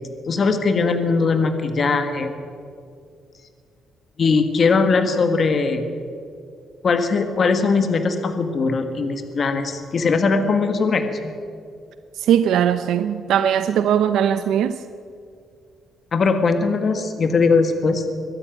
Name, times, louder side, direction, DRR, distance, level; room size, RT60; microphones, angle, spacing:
voice 1, 0.3-2.3 4.2-5.8 6.8-11.3 16.1-18.1, left 4 dB, 35° left, 8 dB, 1.5 m, -20 dB
voice 2, 12.2-14.8, right 9 dB, 75° right, 11 dB, 0.7 m, -19 dB
22.5 x 12.5 x 9.2 m, 2.3 s
cardioid pair, 155°, 0 cm